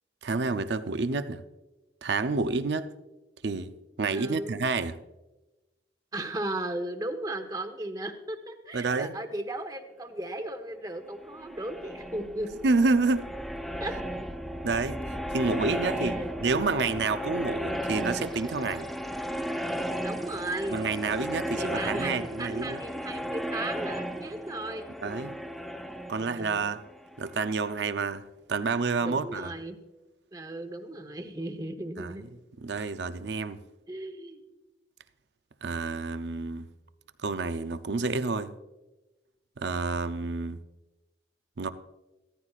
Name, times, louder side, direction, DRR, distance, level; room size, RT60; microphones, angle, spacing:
voice 1, 0.2-1.4 2.0-2.9 3.4-3.7 4.0-4.9 8.7-9.1 12.6-13.2 14.6-18.9 20.7-22.8 25.0-25.4 26.1-26.8 27.2-28.2 28.5-29.5 32.0-32.1 32.6-33.6 35.6-36.7 37.2-38.5 39.6-40.6 41.6-41.7, right 3 dB, 75° right, 0.6 m, -29 dB
voice 2, 4.1-4.5 6.1-12.5 13.8-14.0 15.9-16.7 20.0-20.8 21.6-25.3 26.2-26.7 29.0-29.8 30.3-32.2 33.9-34.4, right 1 dB, 20° right, 0.9 m, -36 dB
sound 1, 11.2-27.8, equal, ahead, 0.5 m, -35 dB
15.5 x 13.5 x 2.4 m
head